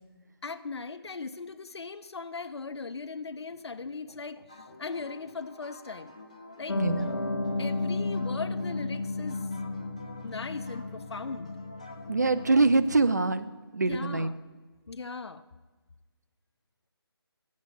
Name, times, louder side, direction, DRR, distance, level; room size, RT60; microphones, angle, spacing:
voice 1, 0.4-6.1 6.6-6.8 7.6-9.4 10.2-11.5 13.8-14.3 14.9-15.4, left 4 dB, 85° left, 10 dB, 0.6 m, -38 dB
sound 1, 4.5-12.7, left 2 dB, 15° left, 0.5 m, -49 dB
Piano, 6.7-13.2, left 3 dB, 65° left, 1.1 m, -33 dB
voice 2, 6.8-7.1 12.1-13.5 13.7-14.3, right 3 dB, 40° right, 13 dB, 0.4 m, -24 dB
7.4 x 7.0 x 8.0 m, 1.3 s
figure-of-eight pair, 180°, 14 cm